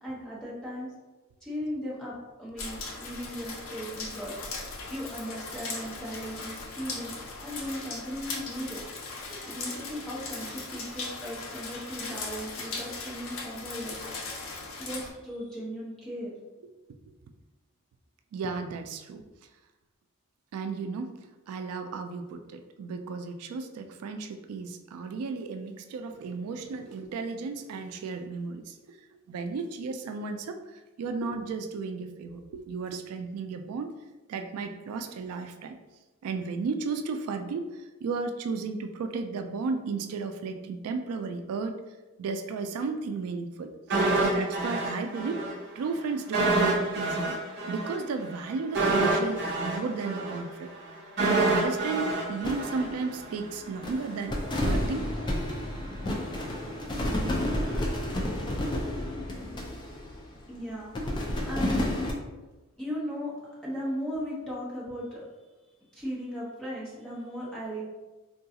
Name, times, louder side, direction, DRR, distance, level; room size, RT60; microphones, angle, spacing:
voice 1, 0.0-0.9 1.4-2.1 2.4-4.3 4.9-7.2 7.4-8.8 9.4-14.1 14.8-16.3 60.5-61.2 61.4-61.9 62.8-63.3 63.6-65.2 65.9-67.8, equal, 5° left, -8 dB, 0.9 m, -37 dB
sound 1, 2.6-15.1, left 3 dB, 65° left, 0.6 m, -38 dB
voice 2, 18.3-19.2 20.5-21.1 21.5-33.9 34.3-35.8 36.2-41.8 42.2-45.5 45.8-47.4 47.7-50.7 51.2-54.3 54.6-55.1, right 4 dB, 85° right, 8 dB, 0.3 m, -34 dB
sound 2, 43.9-45.5 45.8-45.9 46.3-53.4 53.7-53.8, right 2 dB, 50° right, 0.7 m, -27 dB
sound 3, 52.4-53.5 53.8-60.5 60.9-62.1, left 1 dB, 20° left, 0.4 m, -31 dB
3.7 x 2.3 x 2.8 m, 1.1 s
head